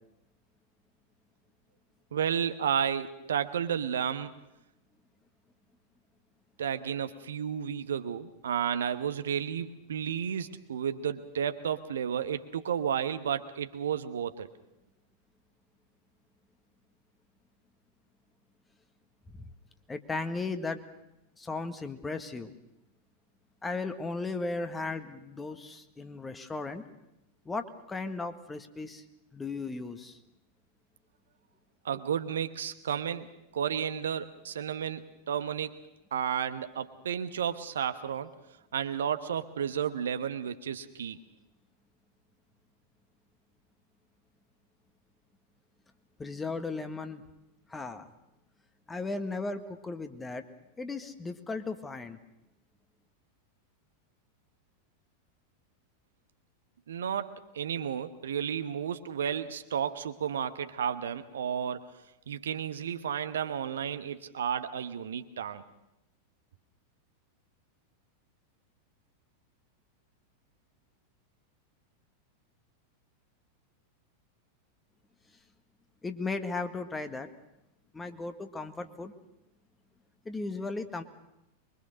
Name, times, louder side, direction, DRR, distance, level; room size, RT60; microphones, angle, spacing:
voice 1, 2.1-4.3 6.6-14.5 31.8-33.3 33.5-35.7 36.1-38.3 38.7-41.2 56.9-61.8 62.3-65.6, right 8 dB, 65° right, 10 dB, 1.1 m, -32 dB
voice 2, 19.9-20.8 21.4-22.5 23.6-26.8 27.4-29.0 29.3-30.2 46.2-47.2 47.7-48.1 48.9-50.4 50.8-52.2 76.0-77.3 77.9-79.1 80.2-81.0, left 3 dB, 10° left, 7 dB, 1.6 m, -36 dB
24.0 x 23.0 x 6.4 m, 0.91 s
figure-of-eight pair, 90°, 0 cm